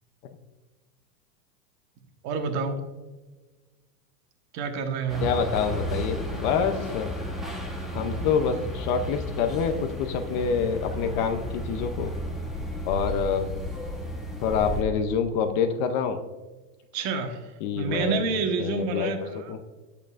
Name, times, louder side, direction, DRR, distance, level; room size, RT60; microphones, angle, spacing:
voice 1, 2.2-2.8 4.5-5.2 16.9-19.5, right 4 dB, 35° right, 5 dB, 1.2 m, -28 dB
sound 1, 5.1-14.8, left 1 dB, ahead, 1.0 m, -33 dB
voice 2, 5.2-7.1 7.9-12.1 12.9-13.5 14.4-16.2 17.6-18.2 18.6-19.1 19.5-19.6, left 6 dB, 30° left, 7 dB, 0.5 m, -26 dB
10.5 x 8.4 x 2.4 m, 1.2 s
supercardioid pair, 145°, 49 cm